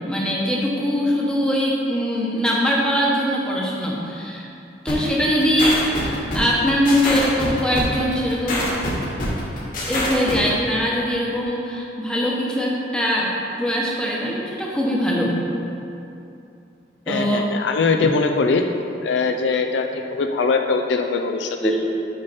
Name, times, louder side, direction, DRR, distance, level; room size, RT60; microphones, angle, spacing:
voice 1, 0.0-4.5 4.8-8.7 9.8-13.3 13.6-15.4 17.1-17.4 21.6-21.9, equal, 5° left, -4 dB, 0.9 m, -22 dB
sound 1, 4.9-10.5, left 1 dB, 50° left, 1.4 m, -25 dB
voice 2, 17.1-18.6 19.0-21.6, left 4 dB, 75° left, 4 dB, 0.4 m, -21 dB
6.7 x 5.6 x 4.1 m, 2.7 s
head